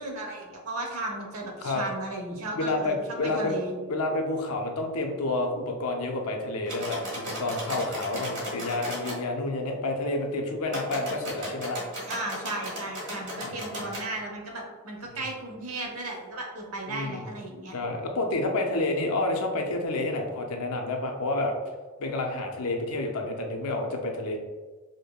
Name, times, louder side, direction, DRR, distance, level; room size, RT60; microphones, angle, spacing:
voice 1, 0.0-3.7 12.1-17.7, right 2 dB, 75° right, 0 dB, 0.8 m, -35 dB
voice 2, 2.5-3.6 3.9-11.8 13.4-13.9 15.1-15.2 16.9-17.3 17.7-21.5 22.0-24.4, left 2 dB, 85° left, 2 dB, 0.6 m, -29 dB
sound 1, 6.7-9.2 10.7-14.1, equal, 55° right, 1.2 m, -36 dB
5.1 x 2.1 x 2.2 m, 1.4 s
head